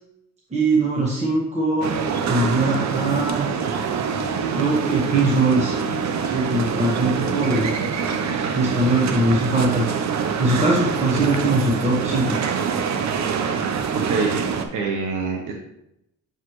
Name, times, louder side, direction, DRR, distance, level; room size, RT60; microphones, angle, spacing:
voice 1, 0.5-1.9 2.3-3.5 4.5-5.8 6.2-7.7 8.5-9.8 10.4-12.4, right 2 dB, 20° right, -4 dB, 1.4 m, -21 dB
sound 1, 1.8-14.6, right 6 dB, 65° right, 0.8 m, -25 dB
voice 2, 13.9-14.4 14.7-15.5, right 4 dB, 85° right, 0 dB, 1.1 m, -25 dB
7.2 x 4.7 x 3.2 m, 0.81 s
cardioid pair, 90°, 30 cm